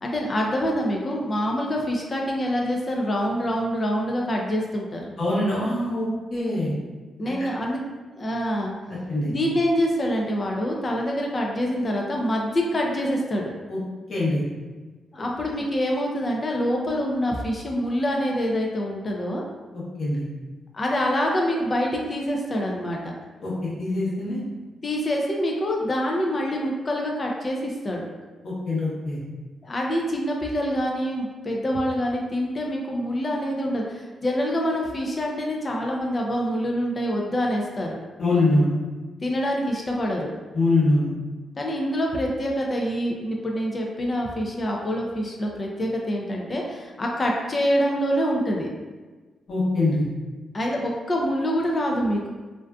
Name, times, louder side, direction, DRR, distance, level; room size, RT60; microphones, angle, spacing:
voice 1, 0.0-5.0 7.2-7.8 8.2-8.7 9.2-13.5 15.1-19.4 20.7-23.1 24.8-28.1 29.6-38.0 39.2-40.3 41.6-48.7 50.5-52.3, equal, 30° left, -1 dB, 0.3 m, -26 dB
voice 2, 5.2-6.7 7.4-7.5 8.9-9.3 13.7-13.8 14.1-14.4 19.7-20.2 23.4-24.4 28.4-29.2 38.2-38.7 40.5-41.1 49.5-50.0, left 2 dB, 50° left, -7 dB, 0.9 m, -23 dB
2.5 x 2.3 x 2.2 m, 1.3 s
cardioid pair, 120°, 0 cm